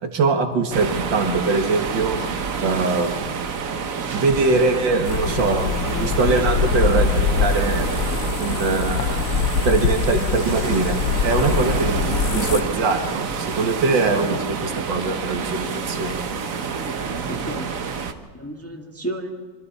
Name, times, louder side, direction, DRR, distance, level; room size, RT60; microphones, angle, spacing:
voice 1, 0.0-2.2 2.6-3.3 4.1-7.9 8.4-9.2 9.6-11.0 11.2-16.2, right 3 dB, 65° right, 5 dB, 2.3 m, -22 dB
sound 1, 0.7-18.1, right 5 dB, 50° right, 1.3 m, -28 dB
sound 2, 5.0-12.6, left 6 dB, 60° left, 1.3 m, -23 dB
voice 2, 17.3-17.7 18.3-19.3, right 1 dB, 10° left, 2 dB, 1.5 m, -32 dB
25.5 x 25.0 x 4.2 m, 1.5 s
omnidirectional pair, 2.2 m